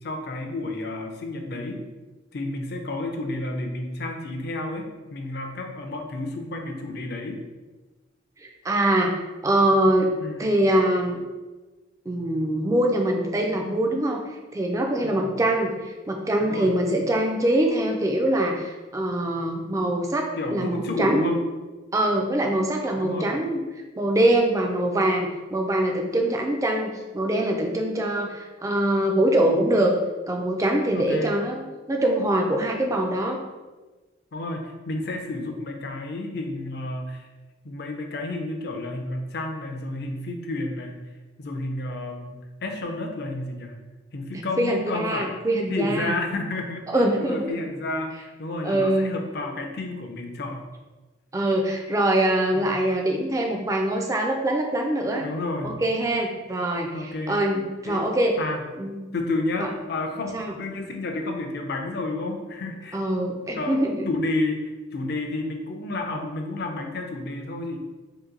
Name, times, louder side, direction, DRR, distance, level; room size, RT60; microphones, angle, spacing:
voice 1, 0.0-1.8 2.3-7.4 10.2-10.5 15.0-15.4 16.4-16.8 20.4-21.4 23.0-23.3 30.9-31.3 34.3-37.3 37.6-41.0 41.4-43.8 44.1-45.3 45.7-46.8 47.1-50.6 52.5-52.8 55.2-55.8 56.9-57.4 57.9-58.1 58.4-58.6 59.1-63.0 63.5-63.7 64.1-67.8, left 2 dB, 55° left, 3 dB, 0.4 m, -31 dB
voice 2, 8.4-9.2 9.4-10.1 10.4-11.2 12.1-14.2 14.5-21.3 21.9-23.6 24.0-29.9 30.3-33.4 44.3-46.1 46.9-47.5 48.6-49.1 51.3-55.2 55.6-58.4 58.8-59.0 59.6-59.7 60.3-60.5 62.9-64.1, right 1 dB, 15° right, 2 dB, 0.3 m, -23 dB
2.8 x 2.6 x 3.8 m, 1.2 s
head